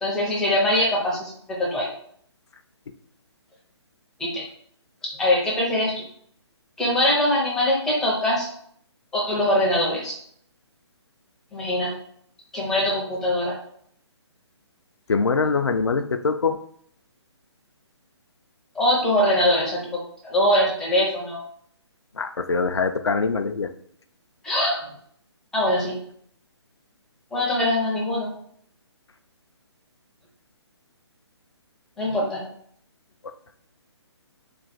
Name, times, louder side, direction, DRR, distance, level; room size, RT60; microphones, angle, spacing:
voice 1, 0.0-1.3 1.6-1.9 4.2-4.4 5.2-6.0 6.8-8.5 9.1-10.2 11.5-11.9 12.5-13.6 18.7-21.4 24.4-24.8 25.5-26.0 27.3-28.3 32.0-32.4, left 1 dB, 5° left, -4 dB, 0.5 m, -22 dB
voice 2, 15.1-16.6 22.1-23.7, left 4 dB, 70° left, 8 dB, 0.4 m, -23 dB
3.3 x 2.3 x 4.0 m, 0.64 s
figure-of-eight pair, 140°, 15 cm